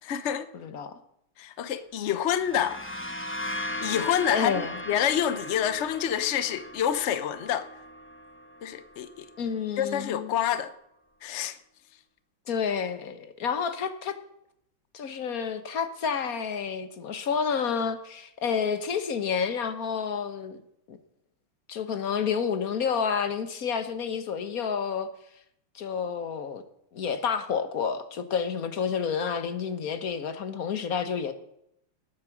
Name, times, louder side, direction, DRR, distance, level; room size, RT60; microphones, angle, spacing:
voice 1, 0.0-0.5 1.4-2.9 3.8-4.5 4.9-7.7 8.6-9.1 9.8-10.7 11.2-11.6, left 9 dB, 70° left, 0.6 m, -27 dB
voice 2, 0.5-0.9 4.3-4.8 9.4-10.4 12.5-14.2 14.9-20.6 20.9-21.0 21.7-25.1 25.7-26.6 26.9-31.3, left 6 dB, 50° left, 1.5 m, -29 dB
sound 1, 2.2-9.8, left 1 dB, 10° left, 0.9 m, -38 dB
19.0 x 8.5 x 6.1 m
omnidirectional pair, 2.2 m